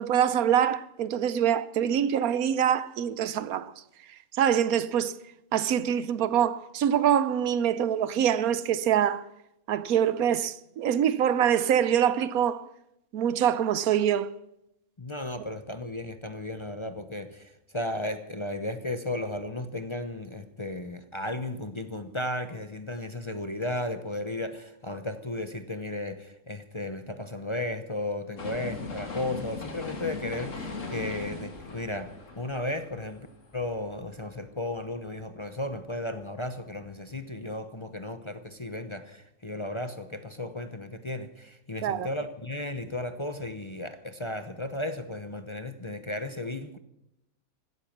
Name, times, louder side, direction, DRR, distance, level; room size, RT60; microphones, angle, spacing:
voice 1, 0.0-3.7 4.3-5.2 5.5-9.3 9.7-12.7 13.1-14.3 41.8-42.1, right 9 dB, 85° right, 1.2 m, -25 dB
voice 2, 15.0-33.3 33.5-46.8, left 1 dB, 25° left, 0.7 m, -34 dB
sound 1, 28.4-34.4 34.8-34.9, left 4 dB, 60° left, 2.5 m, -39 dB
16.0 x 13.0 x 5.9 m
omnidirectional pair, 1.5 m